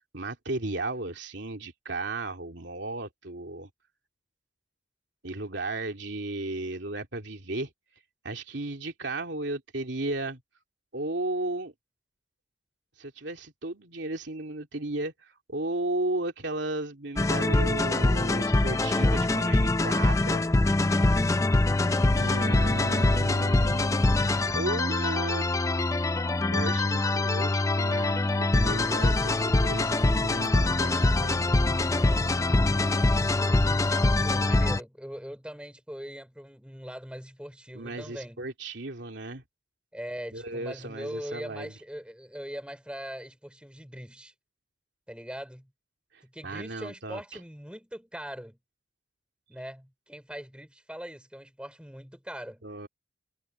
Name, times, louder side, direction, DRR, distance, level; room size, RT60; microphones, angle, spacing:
voice 1, 0.1-3.7 5.2-7.7 8.2-10.4 10.9-11.7 13.0-20.4 22.2-24.0 24.5-25.4 26.5-31.4 37.7-39.4 40.3-41.7 46.4-47.4 52.6-52.9, right 2 dB, 70° right, 2.7 m, -34 dB
sound 1, 17.2-34.8, left 2 dB, 15° left, 0.4 m, -24 dB
voice 2, 32.4-32.8 33.3-33.8 34.2-38.4 39.9-44.3 45.1-45.7 46.2-48.6 49.5-52.6, equal, 5° right, 4.8 m, -41 dB
head